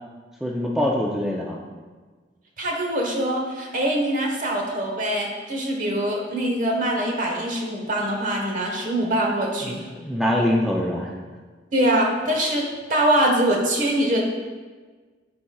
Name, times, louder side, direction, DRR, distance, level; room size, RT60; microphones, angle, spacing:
voice 1, 0.4-1.6 9.6-11.1, left 1 dB, ahead, -3 dB, 0.4 m, -24 dB
voice 2, 2.6-9.9 11.7-12.6 12.9-14.2, right 1 dB, 50° right, 0 dB, 1.1 m, -23 dB
12.0 x 4.2 x 2.3 m, 1.4 s
head